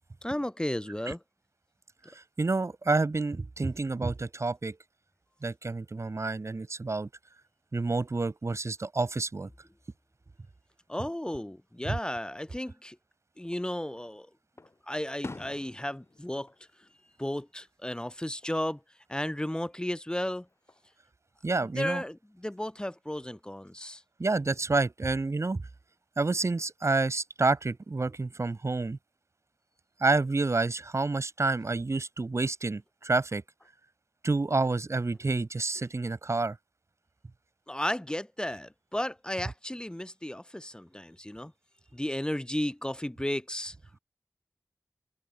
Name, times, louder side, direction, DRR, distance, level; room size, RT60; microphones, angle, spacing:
voice 1, 0.2-1.2 10.9-13.0 13.4-14.3 14.9-16.5 17.2-18.8 19.1-20.5 21.6-24.0 37.7-41.5 41.9-43.8, left 1 dB, 15° left, 2.4 m, -34 dB
voice 2, 2.1-4.8 5.4-7.1 7.7-9.5 21.4-22.0 24.2-25.6 26.2-29.0 30.0-33.4 34.2-36.6, right 3 dB, 50° right, 1.2 m, -29 dB
Fireworks, 13.4-14.1 14.6-17.7 18.0-18.6 20.1-20.9, left 2 dB, 45° left, 3.9 m, -48 dB
wide cardioid pair, 60°, 6 cm